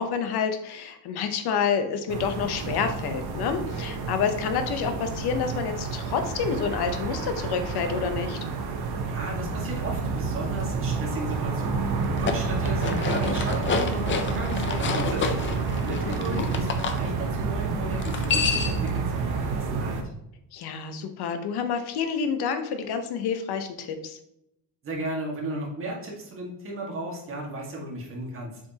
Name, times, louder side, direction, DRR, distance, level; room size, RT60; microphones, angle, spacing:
voice 1, 0.0-8.4 16.1-16.5 20.5-24.2, left 6 dB, 70° left, 8 dB, 0.9 m, -28 dB
sound 1, 2.1-20.0, right 4 dB, 65° right, 1.1 m, -29 dB
voice 2, 9.1-15.4 15.7-20.0 24.8-28.6, right 1 dB, 30° right, -2 dB, 1.8 m, -35 dB
sound 2, 12.0-17.0 18.0-18.9, left 6 dB, 30° left, 0.5 m, -29 dB
7.5 x 5.1 x 2.9 m, 0.83 s
cardioid pair, 180°, 40 cm